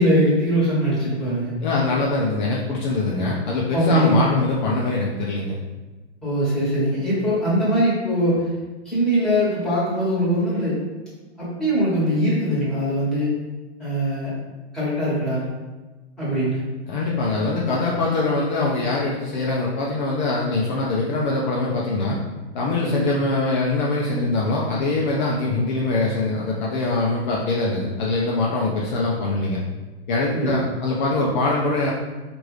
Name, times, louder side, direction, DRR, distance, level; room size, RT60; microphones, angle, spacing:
voice 1, 0.0-1.5 3.7-4.4 6.2-8.5 8.8-10.8 11.4-13.3 13.8-14.3 14.7-15.4 16.2-16.6 22.8-23.0 30.3-30.5, equal, ahead, -11 dB, 1.5 m, -21 dB
voice 2, 1.6-5.5 16.9-22.2 22.5-29.6 30.1-31.9, left 2 dB, 45° left, -4 dB, 0.6 m, -23 dB
4.5 x 2.6 x 3.2 m, 1.2 s
hypercardioid pair, 145°, 33 cm